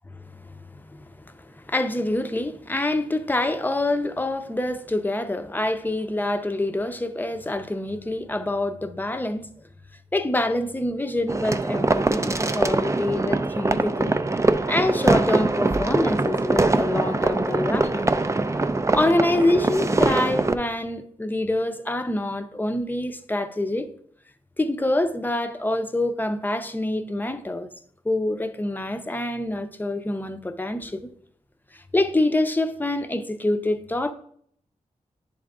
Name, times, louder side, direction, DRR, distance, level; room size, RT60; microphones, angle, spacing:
voice 1, 0.1-0.8 1.2-9.5 10.1-14.2 14.7-18.1 18.9-23.9 24.6-27.7 28.0-31.1 31.7-34.1, left 1 dB, 15° left, 0.6 m, -26 dB
sound 1, 11.3-20.5, right 2 dB, 20° right, 0.4 m, -23 dB
10.5 x 3.7 x 3.6 m
cardioid pair, 60°, 14 cm